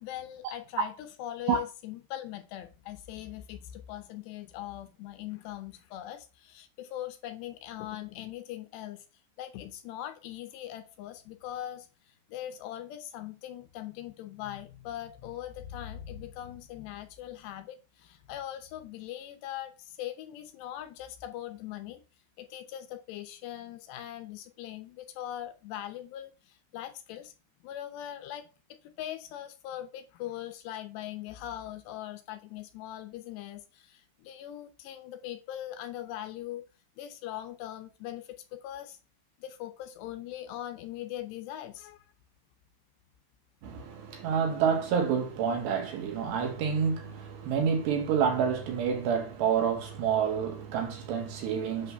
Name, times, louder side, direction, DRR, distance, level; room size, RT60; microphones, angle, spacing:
voice 1, 0.0-9.0 9.4-22.0 22.4-27.3 27.6-28.5 29.0-36.6 37.0-39.0 39.4-42.0, left 12 dB, 75° left, 2.7 m, -41 dB
voice 2, 43.6-51.9, right 7 dB, 70° right, 3.3 m, -28 dB
8.5 x 3.6 x 6.7 m
omnidirectional pair, 5.3 m